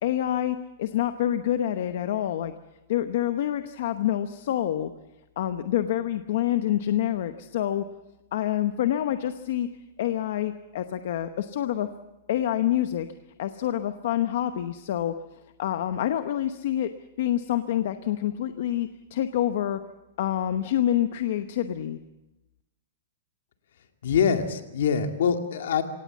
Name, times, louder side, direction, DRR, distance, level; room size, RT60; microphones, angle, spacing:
voice 1, 0.0-2.5 2.9-4.9 5.4-7.9 8.3-9.7 10.0-11.9 12.3-13.1 13.4-15.1 15.6-16.9 17.2-19.8 20.2-22.0, left 12 dB, 50° left, 9 dB, 0.9 m, -27 dB
voice 2, 24.0-25.8, left 7 dB, 65° left, 5 dB, 2.3 m, -24 dB
25.0 x 18.0 x 7.3 m, 0.97 s
supercardioid pair, 180°, 0 cm